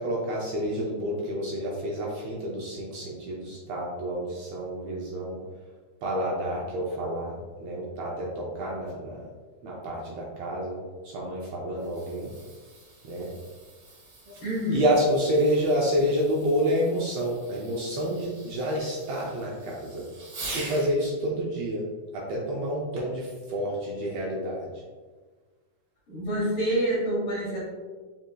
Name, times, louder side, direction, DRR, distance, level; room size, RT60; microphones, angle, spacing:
voice 1, 0.0-5.4 6.0-9.3 9.6-10.8 11.0-12.3 13.0-13.3 14.7-20.1 20.5-21.8 22.1-24.7, equal, 75° right, -3 dB, 1.6 m, -29 dB
Fireworks, 11.6-20.9 23.0-23.3 24.0-24.1, right 2 dB, 55° right, 1.7 m, -44 dB
voice 2, 14.4-14.8 26.1-27.6, equal, 60° left, -5 dB, 1.7 m, -27 dB
5.0 x 4.2 x 2.2 m, 1.4 s
omnidirectional pair, 3.4 m